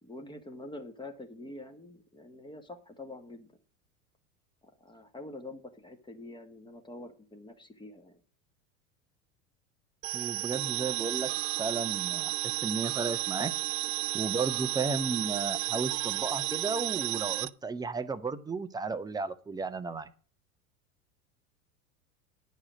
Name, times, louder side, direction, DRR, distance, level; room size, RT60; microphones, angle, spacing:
voice 1, 0.0-3.5 4.6-8.2, left 2 dB, 10° left, 6 dB, 1.6 m, -46 dB
sound 1, 10.0-17.5, right 16 dB, 55° right, 0.6 m, -32 dB
voice 2, 10.1-11.3 11.6-12.3 12.6-13.5 14.1-20.1, right 4 dB, 10° right, 11 dB, 0.7 m, -34 dB
10.0 x 4.9 x 7.4 m, 0.41 s
figure-of-eight pair, 80°, 44 cm